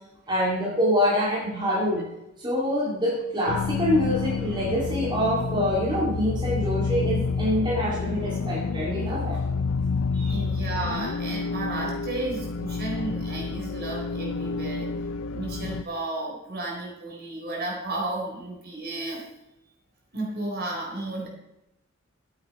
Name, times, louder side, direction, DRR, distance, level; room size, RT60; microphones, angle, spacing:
voice 1, 0.3-2.0 2.4-9.4 10.1-10.4, equal, 20° right, -5 dB, 2.3 m, -25 dB
sound 1, 3.5-15.8, left 4 dB, 80° left, 0.5 m, -29 dB
voice 2, 10.3-14.9 15.3-19.2 20.1-21.3, right 2 dB, 50° right, -1 dB, 4.0 m, -33 dB
13.5 x 8.6 x 4.3 m, 0.95 s
head